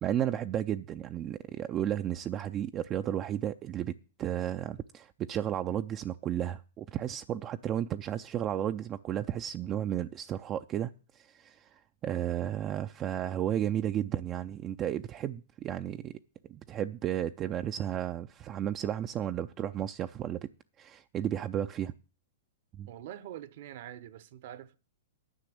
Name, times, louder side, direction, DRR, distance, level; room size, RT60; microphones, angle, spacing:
voice 1, 0.0-3.9 4.2-16.2 16.5-20.5 20.8-21.9 22.8-22.9, right 11 dB, 30° right, 0.5 m, -33 dB
voice 2, 22.9-24.7, right 11 dB, 55° right, 0.9 m, -44 dB
10.0 x 5.9 x 8.6 m
hypercardioid pair, 115°, 0 cm